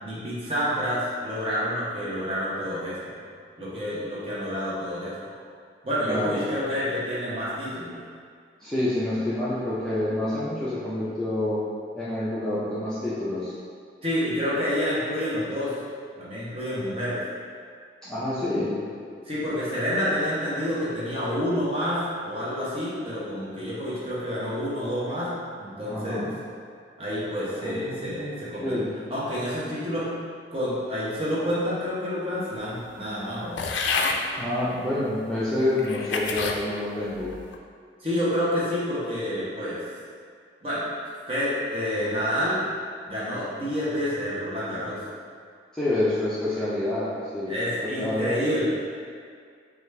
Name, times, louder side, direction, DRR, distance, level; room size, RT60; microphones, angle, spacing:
voice 1, 0.0-3.0 3.6-5.4 5.8-8.0 14.0-15.8 16.2-17.2 19.3-25.3 25.6-26.3 27.0-28.8 29.1-30.1 30.5-33.6 38.0-39.8 40.6-40.9 41.3-42.6 43.1-45.0 47.5-48.7, equal, 30° right, -9 dB, 0.9 m, -28 dB
voice 2, 6.1-6.4 8.6-11.6 11.9-13.5 18.0-18.8 25.9-26.3 27.6-28.9 34.4-37.3 45.7-47.5 47.9-48.3, left 1 dB, 5° left, -11 dB, 0.5 m, -28 dB
sound 1, 33.6-34.2 35.0-35.1 35.8-36.6 37.2-37.6, left 4 dB, 80° left, 0.4 m, -28 dB
4.9 x 2.4 x 3.2 m, 2.1 s
head